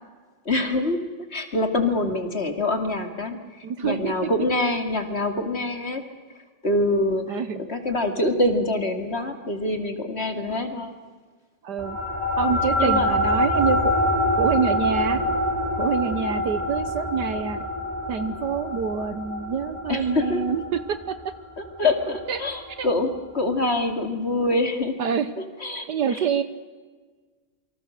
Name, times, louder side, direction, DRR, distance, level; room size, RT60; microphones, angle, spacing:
voice 1, 0.5-1.0 1.3-6.0 6.6-7.4 7.7-10.9 12.8-13.1 19.9-20.4 21.8-25.0 25.6-26.2, left 2 dB, 35° left, 6 dB, 2.5 m, -25 dB
voice 2, 3.6-4.3 4.6-4.7 7.3-7.6 11.6-12.0 12.4-13.9 14.4-15.2 15.8-17.6 18.1-21.2 22.3-22.4 22.8-22.9 25.0-25.3 25.9-26.4, right 6 dB, 65° right, 12 dB, 1.5 m, -26 dB
sound 1, 11.8-22.6, left 1 dB, 15° left, 4.2 m, -26 dB
27.5 x 25.0 x 6.6 m, 1.4 s
omnidirectional pair, 2.1 m